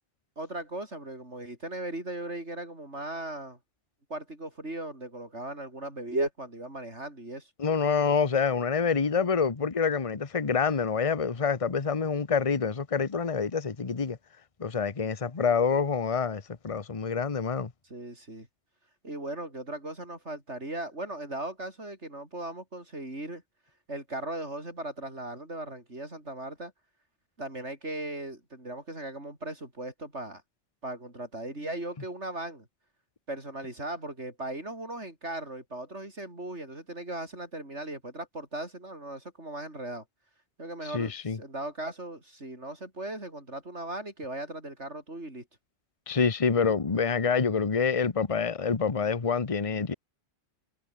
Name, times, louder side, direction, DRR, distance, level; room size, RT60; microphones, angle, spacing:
voice 1, 0.4-3.6 4.1-7.5 17.8-18.5 19.0-23.4 23.9-26.7 27.4-30.4 30.8-32.7 33.3-40.0 40.6-45.4, right 1 dB, 70° right, 7.1 m, -37 dB
voice 2, 7.6-14.2 14.6-17.7 40.9-41.4 46.1-49.9, left 5 dB, 30° left, 1.2 m, -27 dB
omnidirectional pair, 1.2 m